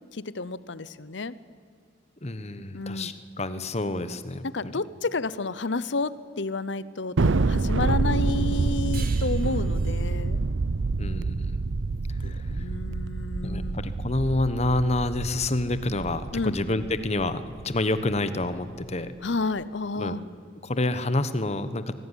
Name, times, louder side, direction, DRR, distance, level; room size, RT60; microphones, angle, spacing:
voice 1, 0.1-1.3 2.7-3.1 4.4-10.4 12.2-13.8 16.3-16.6 19.2-20.2, left 3 dB, 65° left, 17 dB, 0.8 m, -31 dB
voice 2, 2.2-4.4 11.0-11.6 12.2-12.5 13.4-19.1 19.9-20.2 20.6-21.9, left 2 dB, 35° left, 12 dB, 1.2 m, -28 dB
Thunder, 7.2-17.8, right 3 dB, 75° right, 0.6 m, -27 dB
sound 1, 8.9-12.1, right 7 dB, 50° right, 2.3 m, -46 dB
24.5 x 17.5 x 10.0 m, 2.4 s
head